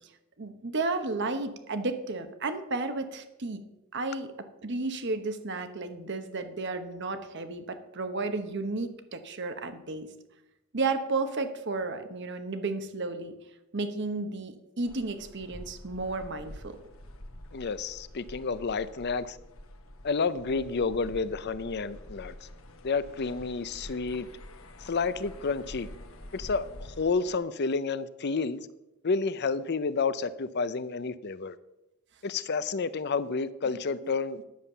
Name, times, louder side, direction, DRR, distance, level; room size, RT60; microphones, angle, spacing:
voice 1, 0.4-3.6 3.9-10.1 10.7-13.3 13.7-16.8 34.0-34.1, right 3 dB, 55° right, 9 dB, 1.1 m, -33 dB
sound 1, 14.8-27.4, left 1 dB, 70° left, 1.2 m, -47 dB
voice 2, 17.5-19.4 20.0-22.3 22.8-24.3 24.8-25.9 26.3-26.7 27.0-28.6 29.0-31.6 32.2-34.4, left 4 dB, 50° left, 15 dB, 0.6 m, -30 dB
10.5 x 7.3 x 6.8 m, 0.94 s
head